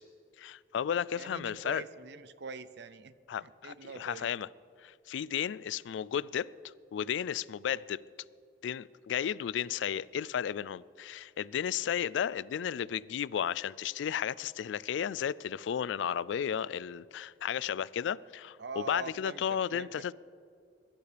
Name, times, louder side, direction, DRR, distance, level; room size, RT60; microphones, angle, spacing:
voice 1, 0.4-1.8 3.3-4.5 4.8-6.5 6.9-8.0 8.6-20.1, left 8 dB, 80° left, 0.3 m, -33 dB
voice 2, 1.1-4.3 18.6-19.4 19.7-20.1, right 4 dB, 65° right, 0.6 m, -44 dB
22.5 x 12.0 x 3.4 m
head